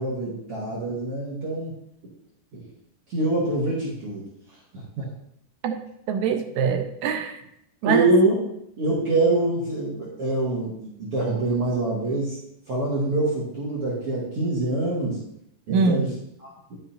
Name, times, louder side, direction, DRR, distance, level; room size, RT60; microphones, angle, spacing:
voice 1, 0.0-1.7 2.0-2.1 2.5-2.7 3.1-5.1 7.8-8.4 8.8-12.4 12.7-15.2 15.7-16.1 16.4-16.8, right 2 dB, 55° right, -6 dB, 2.0 m, -25 dB
voice 2, 6.1-7.4 7.8-8.1 15.7-16.1, right 5 dB, 80° right, 6 dB, 2.0 m, -23 dB
11.0 x 5.6 x 2.6 m, 0.76 s
omnidirectional pair, 3.5 m